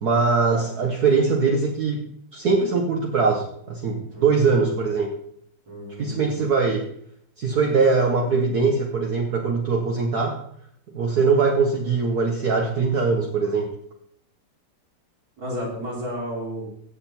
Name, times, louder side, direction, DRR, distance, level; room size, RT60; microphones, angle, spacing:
voice 1, 0.0-2.1 2.3-5.2 6.0-6.9 7.4-10.4 10.9-13.8, right 4 dB, 50° right, 0 dB, 1.7 m, -21 dB
voice 2, 0.5-0.9 4.1-4.9 5.7-6.4 15.4-16.7, equal, 70° right, -5 dB, 5.9 m, -33 dB
16.5 x 7.6 x 4.4 m, 0.66 s
omnidirectional pair, 2.3 m